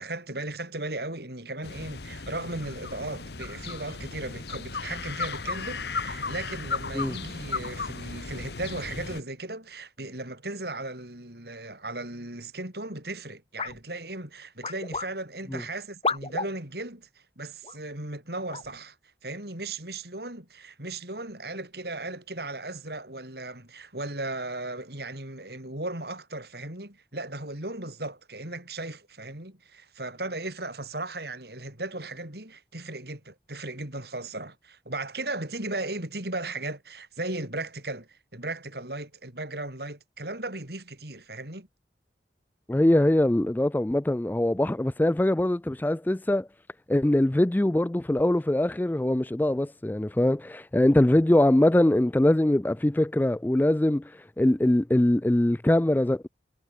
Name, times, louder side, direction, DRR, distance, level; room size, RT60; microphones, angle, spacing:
voice 1, 0.0-19.0 19.2-41.7, right 2 dB, 60° right, 4.9 m, -36 dB
sound 1, 1.6-9.2, left 4 dB, 65° left, 1.5 m, -35 dB
sound 2, 13.6-13.8 14.6-15.1 16.0-16.5 17.6-17.8 18.5-18.7, left 4 dB, 30° left, 5.4 m, -31 dB
voice 2, 42.7-46.5 46.9-54.0 54.4-56.3, left 1 dB, 10° left, 0.3 m, -22 dB
head